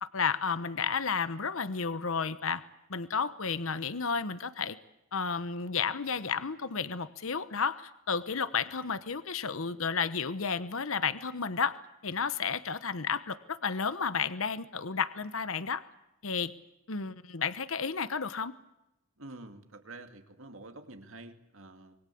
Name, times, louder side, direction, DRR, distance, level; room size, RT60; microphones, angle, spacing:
voice 1, 0.0-2.6 2.9-4.8 5.1-11.7 12.0-15.8 16.2-16.5 16.9-18.5, left 5 dB, 65° left, 13 dB, 1.1 m, -32 dB
voice 2, 19.2-22.0, right 2 dB, 65° right, 7 dB, 2.4 m, -48 dB
26.0 x 22.0 x 8.5 m, 0.89 s
head